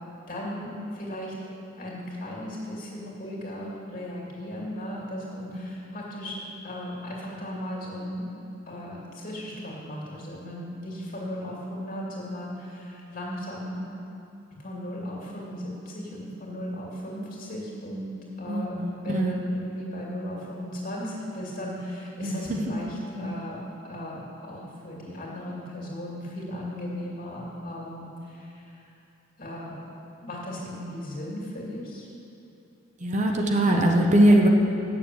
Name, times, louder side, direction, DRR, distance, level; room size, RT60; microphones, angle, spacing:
voice 1, 0.3-1.3 1.8-6.4 6.6-8.3 8.7-13.8 14.6-18.1 18.4-28.8 29.4-29.8 30.2-32.1, left 1 dB, 45° left, -4 dB, 2.5 m, -36 dB
voice 2, 18.5-19.3 22.2-22.7 23.2-23.4 33.0-34.5, right 1 dB, 40° right, 1 dB, 0.8 m, -22 dB
8.5 x 6.9 x 7.8 m, 2.8 s
head